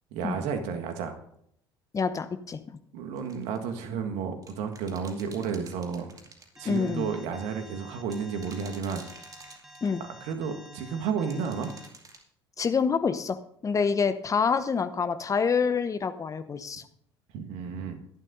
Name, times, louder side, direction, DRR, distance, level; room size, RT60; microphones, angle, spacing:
voice 1, 0.1-1.2 2.9-6.2 6.6-9.1 10.2-11.7 17.3-18.0, right 6 dB, 60° right, 6 dB, 1.7 m, -32 dB
voice 2, 1.9-2.6 6.6-7.1 9.8-10.0 12.6-13.4 13.6-16.8, left 5 dB, 25° left, 10 dB, 0.9 m, -27 dB
sound 1, 3.2-3.6 4.4-6.9 8.1-10.1 11.3-12.2, right 3 dB, 25° right, 2.5 m, -50 dB
Alarm, 6.6-11.9, equal, 5° right, 1.8 m, -50 dB
22.0 x 11.0 x 2.7 m, 0.72 s
figure-of-eight pair, 60°, 13 cm